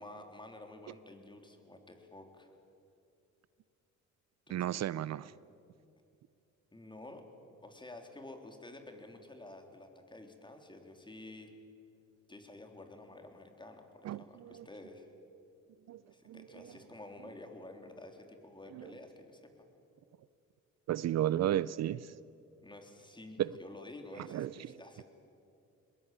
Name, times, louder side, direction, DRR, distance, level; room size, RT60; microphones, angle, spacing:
voice 1, 0.0-2.5 4.5-4.9 6.7-7.2 7.6-11.5 12.3-15.1 16.1-19.7 22.6-25.0, left 2 dB, 15° left, 5 dB, 3.5 m, -51 dB
voice 2, 4.5-5.3 14.0-14.7 15.9-16.0 16.3-16.4 18.7-18.9 20.9-22.1 23.4-23.5 24.3-25.0, right 12 dB, 60° right, 19 dB, 0.5 m, -34 dB
21.5 x 21.0 x 9.0 m, 2.7 s
cardioid pair, 90°, 30 cm